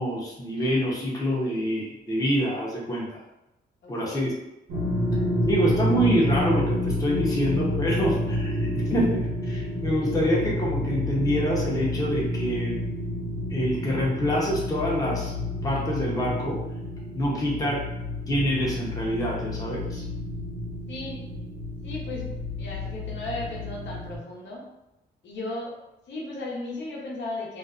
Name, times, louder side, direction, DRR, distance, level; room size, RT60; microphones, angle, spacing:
voice 1, 0.0-3.1 3.9-4.4 5.4-12.8 13.5-15.4 15.6-16.6 17.1-17.9 18.3-20.0, equal, 20° left, -4 dB, 0.7 m, -26 dB
voice 2, 3.8-4.3 20.9-21.2 21.8-24.6 25.2-25.7 26.1-27.6, left 2 dB, 75° left, -2 dB, 0.7 m, -36 dB
sound 1, 4.7-24.2, left 1 dB, 70° right, 1.0 m, -29 dB
2.4 x 2.2 x 2.4 m, 0.93 s
cardioid pair, 90°, 19 cm